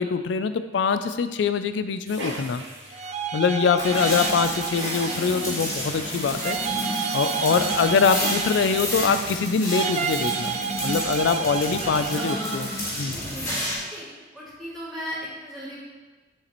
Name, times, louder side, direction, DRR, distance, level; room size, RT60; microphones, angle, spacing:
voice 1, 0.0-2.6 3.3-6.6 7.1-12.7 13.0-13.2, left 5 dB, 70° left, 11 dB, 0.3 m, -24 dB
sound 1, 2.0-9.6 10.0-10.1 10.3-10.4 10.7-11.1 11.4-11.5 12.1-12.2 12.4-13.0 13.3-13.4 13.7-14.2 14.6-14.7, right 2 dB, 80° right, 2.0 m, -39 dB
sound 2, 2.9-5.8 6.4-9.2 9.7-12.6, right 7 dB, 40° right, 0.4 m, -30 dB
sound 3, 3.8-13.8, equal, 15° left, 1.8 m, -31 dB
voice 2, 11.8-12.6 13.1-13.5 13.8-14.1 14.3-15.8, equal, ahead, -12 dB, 2.4 m, -36 dB
7.2 x 6.5 x 3.0 m, 1.2 s
head